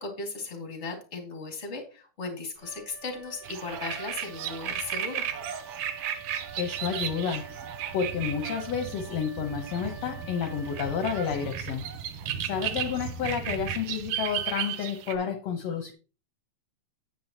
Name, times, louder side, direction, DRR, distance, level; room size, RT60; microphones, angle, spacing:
voice 1, 0.0-5.3, left 3 dB, 25° left, 1.8 m, -37 dB
Wind instrument woodwind instrument, 2.5-12.0, right 5 dB, 55° right, 1.0 m, -47 dB
sound 1, 3.4-15.1, right 9 dB, 85° right, 1.3 m, -35 dB
voice 2, 6.6-7.5 7.9-11.9 12.4-15.9, left 7 dB, 65° left, 1.8 m, -30 dB
9.3 x 9.0 x 2.9 m
omnidirectional pair, 3.9 m